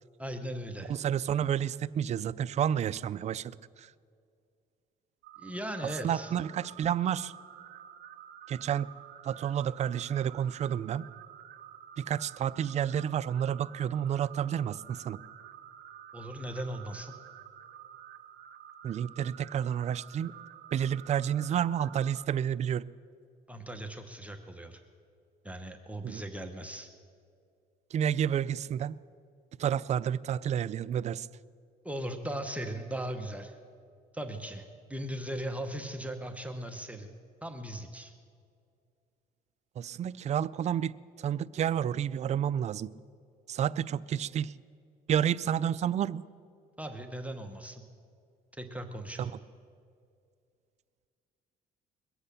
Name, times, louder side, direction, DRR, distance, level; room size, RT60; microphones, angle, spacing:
voice 1, 0.2-0.9 5.4-6.3 16.1-17.2 23.5-24.8 25.4-26.9 31.8-33.5 34.1-34.6 34.9-37.1 37.4-38.1 46.8-47.8 48.6-49.4, right 1 dB, 10° right, 4 dB, 1.0 m, -38 dB
voice 2, 0.9-3.9 6.0-7.3 8.5-8.9 9.2-11.1 12.0-15.2 18.8-20.3 20.7-22.9 26.0-26.2 27.9-29.0 29.6-31.3 39.8-42.9 43.5-44.5 45.1-46.2 49.2-49.3, right 9 dB, 40° right, 16 dB, 0.4 m, -30 dB
sound 1, 5.2-22.3, right 10 dB, 70° right, 0.8 m, -50 dB
22.0 x 8.0 x 6.8 m, 2.3 s
cardioid pair, 110°, 17 cm